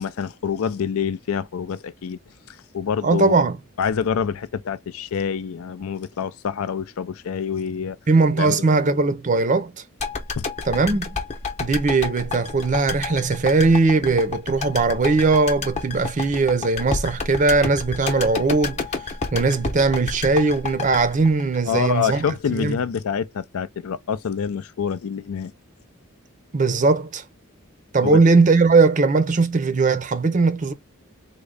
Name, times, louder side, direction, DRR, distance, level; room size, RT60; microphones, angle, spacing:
voice 1, 0.0-2.2 2.5-3.5 3.8-8.0 8.4-8.9 10.3-10.4 21.7-25.5 28.0-28.2, left 7 dB, 80° left, 0.4 m, -26 dB
voice 2, 3.0-3.6 8.1-9.8 10.7-11.2 11.6-18.8 19.3-22.2 22.5-22.8 26.5-27.2 27.9-30.7, right 3 dB, 35° right, 0.5 m, -19 dB
sound 1, 10.0-22.2 22.5-22.6, left 4 dB, 30° left, 0.8 m, -29 dB
3.7 x 2.1 x 3.3 m
head